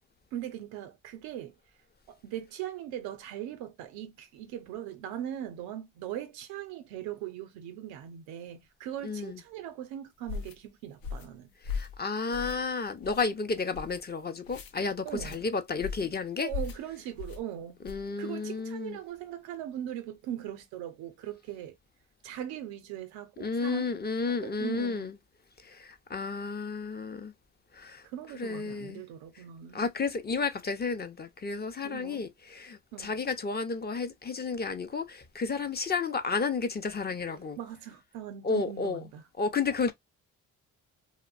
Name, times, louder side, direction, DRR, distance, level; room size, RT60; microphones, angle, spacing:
voice 1, 0.3-1.6 2.1-11.5 15.0-15.4 16.4-17.8 18.2-21.7 22.2-23.9 24.3-25.1 28.0-29.8 31.8-32.2 32.9-33.2 37.3-39.2, right 11 dB, 90° right, 0.6 m, -40 dB
voice 2, 9.0-9.4 11.6-16.5 17.8-19.0 23.4-25.1 25.6-27.3 27.7-28.1 28.4-29.0 29.7-37.6 38.4-39.0 39.4-39.9, left 4 dB, 30° left, 0.5 m, -32 dB
sound 1, 10.3-10.6 11.0-11.3 11.6-12.0 12.3-12.7 13.0-13.2 13.7-14.0 14.4-14.7 15.1-15.4 15.8-16.1 16.5-16.8 17.2-17.4 17.8-18.1, left 5 dB, 75° left, 0.6 m, -37 dB
2.6 x 2.1 x 2.3 m
supercardioid pair, 55°, 36 cm